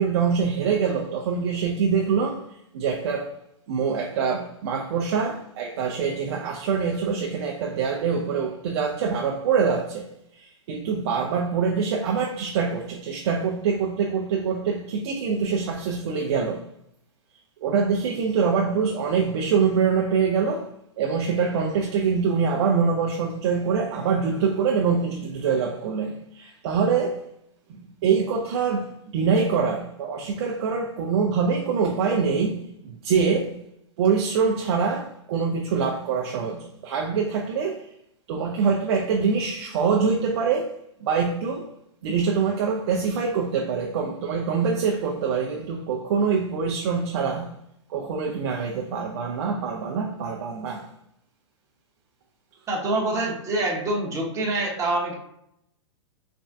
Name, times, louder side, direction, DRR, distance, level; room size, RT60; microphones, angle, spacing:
voice 1, 0.0-2.4 2.7-3.3 3.7-16.7 17.6-20.7 21.0-27.2 27.7-33.5 34.0-37.9 38.3-40.7 41.0-41.7 42.0-47.5 47.9-50.9, right 5 dB, 55° right, 0 dB, 0.4 m, -24 dB
voice 2, 52.7-55.2, right 2 dB, 20° right, -1 dB, 0.8 m, -25 dB
3.4 x 2.1 x 2.5 m, 0.76 s
hypercardioid pair, 115°, 16 cm